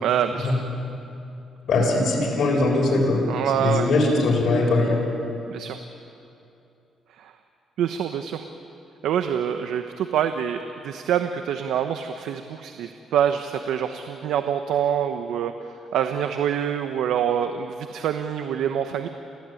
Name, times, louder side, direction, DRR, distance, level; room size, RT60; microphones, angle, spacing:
voice 1, 0.0-0.6 3.3-3.9 5.5-5.8 7.2-7.3 7.8-8.5 9.0-15.5 15.9-19.1, right 9 dB, 80° right, 7 dB, 1.1 m, -25 dB
voice 2, 1.7-3.2 3.5-5.0, left 2 dB, 60° left, -1 dB, 7.2 m, -21 dB
29.0 x 15.5 x 9.2 m, 2.7 s
cardioid pair, 90°, 0 cm